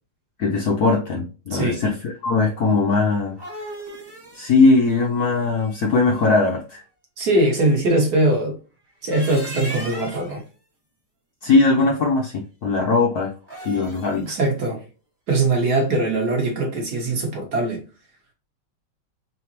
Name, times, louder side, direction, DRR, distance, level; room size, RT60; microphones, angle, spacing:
voice 1, 0.4-3.4 4.3-6.8 11.4-13.3 13.6-14.2, left 3 dB, 65° left, 1.0 m, -19 dB
voice 2, 1.5-1.8 7.2-8.6 9.0-10.4 14.3-14.8 15.3-17.8, right 2 dB, 55° right, 1.4 m, -21 dB
sound 1, 3.1-6.2 8.9-10.4 13.4-14.3, right 1 dB, 15° right, 1.0 m, -38 dB
3.9 x 3.2 x 2.9 m
omnidirectional pair, 2.4 m